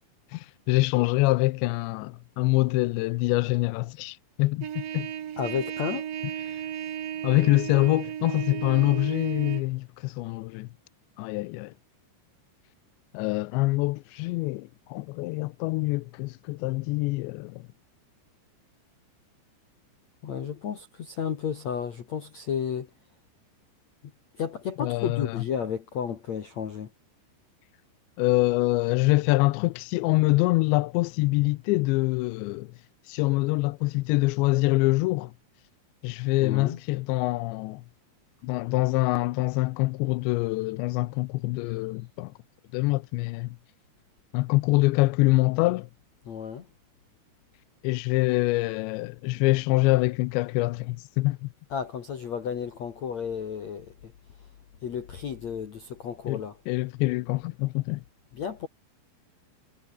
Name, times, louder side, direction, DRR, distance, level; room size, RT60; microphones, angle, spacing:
voice 1, 0.3-5.1 6.5-6.6 7.2-10.7 11.2-11.7 13.1-17.6 24.8-25.3 28.2-32.7 33.1-35.3 36.0-37.8 38.4-42.3 42.7-43.5 44.3-45.9 47.8-51.5 56.3-56.4 56.7-58.0, left 22 dB, 80° left, 2.7 m, -25 dB
Trumpet, 4.6-9.6, right 10 dB, 55° right, 3.2 m, -34 dB
voice 2, 5.4-6.1 20.2-22.9 24.3-26.9 36.4-36.8 46.2-46.7 51.7-54.1 54.4-54.5 54.8-56.6 58.3-58.7, left 7 dB, 50° left, 2.3 m, -32 dB
omnidirectional pair, 5.4 m